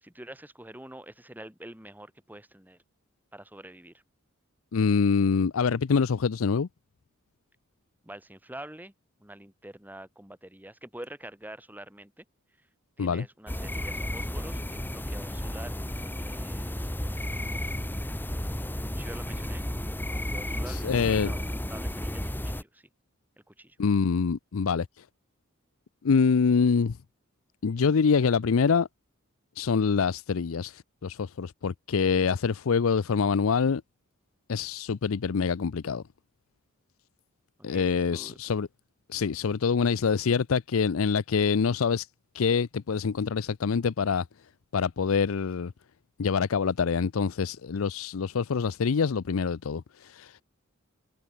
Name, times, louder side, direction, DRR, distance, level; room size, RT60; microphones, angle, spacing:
voice 1, 0.0-2.8 3.3-4.0 8.0-8.9 9.2-12.2 13.0-18.0 18.9-19.6 20.1-22.9 23.5-23.8 37.7-38.5, right 1 dB, 10° right, 3.1 m, -46 dB
voice 2, 4.7-6.7 13.0-13.3 20.7-21.3 23.8-24.9 26.0-27.0 27.6-28.9 29.6-33.8 34.5-36.0 37.6-38.7 39.1-42.1 42.3-44.3 44.7-45.7 46.2-50.4, left 5 dB, 75° left, 0.5 m, -25 dB
sound 1, 13.5-22.6, left 1 dB, 10° left, 2.2 m, -33 dB
head